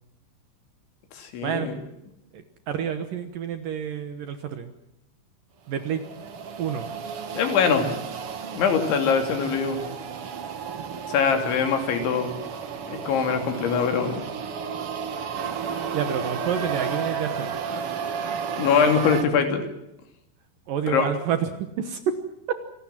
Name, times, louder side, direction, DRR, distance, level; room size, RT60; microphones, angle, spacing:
voice 1, 1.1-1.7 7.3-7.9 8.5-9.8 11.1-12.3 12.9-14.2 18.6-19.6 20.9-21.1, left 6 dB, 80° left, 5 dB, 5.2 m, -22 dB
voice 2, 2.3-4.7 5.7-6.0 6.6-6.9 15.9-17.6 20.7-22.2, right 8 dB, 65° right, 8 dB, 2.4 m, -29 dB
sound 1, 5.7-19.2, right 6 dB, 80° right, 1.2 m, -33 dB
27.0 x 18.5 x 7.6 m, 0.85 s
omnidirectional pair, 5.2 m